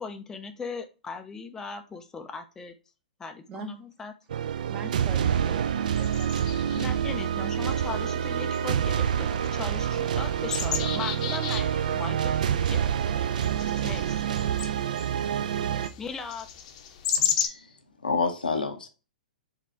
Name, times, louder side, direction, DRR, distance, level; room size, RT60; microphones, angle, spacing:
voice 1, 0.0-2.8 3.2-4.1 6.7-12.8 13.8-14.3 16.0-16.5, left 5 dB, 10° left, 0.4 m, -38 dB
sound 1, 4.3-15.9, right 9 dB, 65° right, 0.3 m, -27 dB
voice 2, 4.7-6.9, right 4 dB, 25° right, 0.7 m, -42 dB
sound 2, 5.9-17.5, left 8 dB, 50° left, 0.7 m, -35 dB
voice 3, 17.2-17.6 18.0-18.9, left 4 dB, 85° left, 0.8 m, -28 dB
4.0 x 2.4 x 4.2 m
figure-of-eight pair, 110°, 5 cm